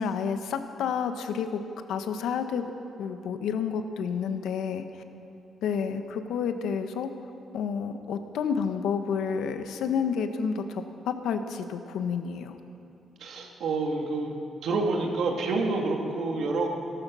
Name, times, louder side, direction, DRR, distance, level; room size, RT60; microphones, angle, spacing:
voice 1, 0.0-1.6 1.9-2.6 3.0-4.8 5.6-7.1 7.5-12.6, left 6 dB, 85° left, 8 dB, 1.0 m, -30 dB
voice 2, 13.2-14.4 14.6-16.7, right 3 dB, 65° right, 2 dB, 2.1 m, -28 dB
18.0 x 12.5 x 6.2 m, 2.7 s
cardioid pair, 160°, 0 cm